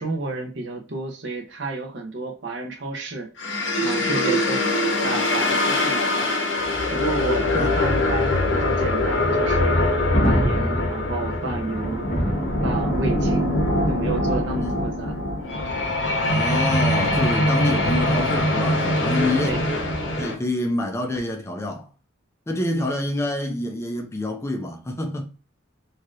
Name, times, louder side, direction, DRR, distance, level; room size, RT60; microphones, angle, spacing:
voice 1, 0.0-3.3 3.8-4.6 5.0-6.3 6.9-9.8 10.2-12.1 12.6-13.5 13.9-15.2 19.4-19.7, right 2 dB, 65° right, 0.8 m, -30 dB
sound 1, 3.4-20.3, left 1 dB, 70° left, 0.7 m, -23 dB
Thunder, 9.5-20.2, equal, 35° left, 0.9 m, -31 dB
voice 2, 16.2-19.6 20.1-21.9 22.5-25.3, left 1 dB, 15° left, 0.4 m, -27 dB
3.2 x 2.7 x 2.3 m
head